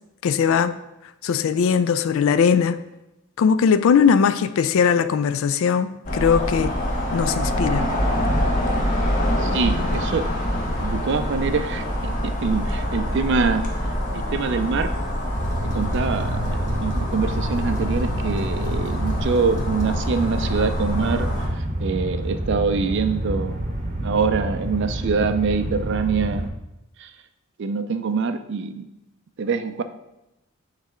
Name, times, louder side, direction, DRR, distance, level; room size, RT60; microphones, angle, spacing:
voice 1, 0.2-0.8 1.2-2.8 3.4-6.7 7.1-7.9, left 6 dB, 65° left, 13 dB, 0.3 m, -19 dB
sound 1, 6.1-21.5, equal, 35° left, 0.9 m, -25 dB
sound 2, 7.6-25.9, equal, 10° left, 0.6 m, -38 dB
voice 2, 9.4-10.3 10.8-14.9 15.6-23.6 24.0-26.5 27.0-27.1 27.6-28.9 29.4-29.8, right 5 dB, 50° right, 10 dB, 0.4 m, -25 dB
sound 3, 15.3-26.5, right 1 dB, 35° right, 0.8 m, -28 dB
8.2 x 3.3 x 3.7 m, 0.92 s
head